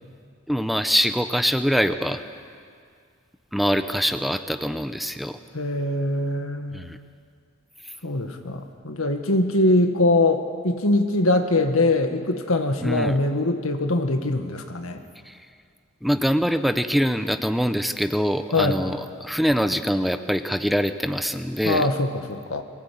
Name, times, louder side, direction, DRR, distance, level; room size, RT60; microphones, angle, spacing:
voice 1, 0.5-2.2 3.5-5.4 6.7-7.0 7.8-7.9 12.8-13.1 15.2-15.4 16.0-21.9, equal, ahead, 9 dB, 0.6 m, -24 dB
voice 2, 5.5-6.8 8.0-15.0 18.5-18.8 21.6-22.6, left 2 dB, 90° left, 6 dB, 1.8 m, -22 dB
22.5 x 17.0 x 8.5 m, 2.1 s
head